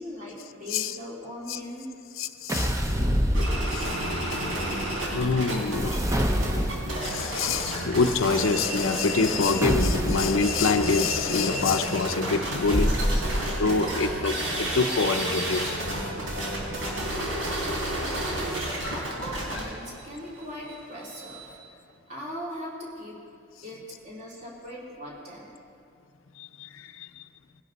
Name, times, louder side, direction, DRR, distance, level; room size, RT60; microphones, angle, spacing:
voice 1, 0.0-1.9 17.4-18.2 18.5-21.5 22.1-23.2 23.6-25.5, equal, 35° right, -4 dB, 3.1 m, -40 dB
voice 2, 2.2-2.8 3.7-4.0 5.1-6.1 7.0-15.8 26.4-27.2, left 4 dB, 80° left, 9 dB, 0.6 m, -26 dB
sound 1, 2.5-4.1 5.5-7.1 9.6-10.5 12.7-13.8, equal, 15° right, 0.7 m, -26 dB
sound 2, 3.3-5.5 5.8-9.6 10.0-21.6, right 1 dB, 85° right, 4.2 m, -32 dB
sound 3, 3.8-18.9, right 1 dB, 65° right, 2.3 m, -36 dB
20.5 x 11.0 x 4.1 m, 2.5 s
head